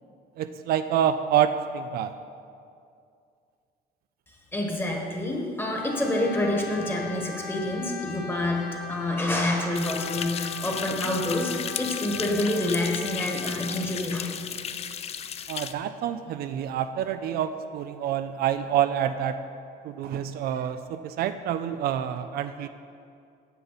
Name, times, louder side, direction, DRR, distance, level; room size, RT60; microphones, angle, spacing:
voice 1, 0.4-2.1 15.5-19.4 19.8-22.7, right 10 dB, 65° right, 10 dB, 0.4 m, -27 dB
voice 2, 4.5-14.4 14.7-14.8, left 1 dB, 15° left, 0 dB, 1.4 m, -28 dB
Brass instrument, 5.7-13.9, left 5 dB, 60° left, 1.4 m, -39 dB
sound 1, 9.7-15.7, left 8 dB, 40° left, 0.4 m, -34 dB
9.5 x 7.1 x 4.0 m, 2.4 s
cardioid pair, 110°, 17 cm